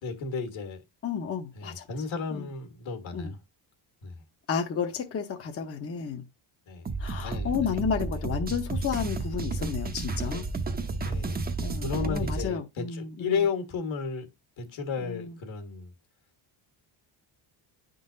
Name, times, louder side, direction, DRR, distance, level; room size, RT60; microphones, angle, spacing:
voice 1, 0.0-0.8 1.5-3.4 4.0-4.2 6.7-6.8 7.2-7.8 8.1-8.2 11.0-11.4 11.8-14.3 14.6-15.9, left 5 dB, 70° left, 1.6 m, -33 dB
voice 2, 1.0-1.9 2.3-2.5 3.1-3.3 4.5-6.2 7.0-10.4 11.6-13.5 15.0-15.4, left 6 dB, 30° left, 0.7 m, -32 dB
sound 1, 6.8-12.5, right 3 dB, 20° right, 0.6 m, -32 dB
10.0 x 3.8 x 2.6 m
cardioid pair, 120°, 48 cm